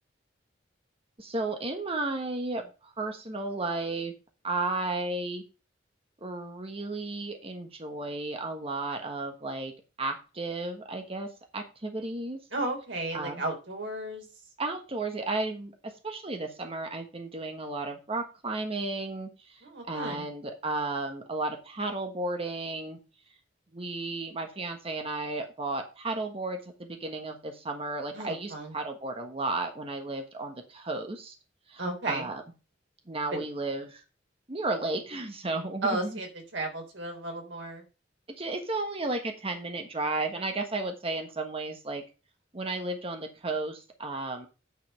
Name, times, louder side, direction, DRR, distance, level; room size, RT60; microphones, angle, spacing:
voice 1, 1.2-4.1 4.4-5.4 6.2-9.7 10.0-11.3 11.5-12.4 13.1-13.4 14.6-23.0 23.7-31.3 31.7-32.4 33.1-34.0 34.5-36.2 38.4-42.0 42.5-44.5, right 2 dB, 30° right, 4 dB, 1.3 m, -33 dB
voice 2, 12.5-14.3 19.6-20.3 28.1-28.8 31.8-32.3 33.3-33.4 35.8-37.8, right 2 dB, 90° right, 2 dB, 3.7 m, -34 dB
9.3 x 5.6 x 5.5 m, 0.32 s
head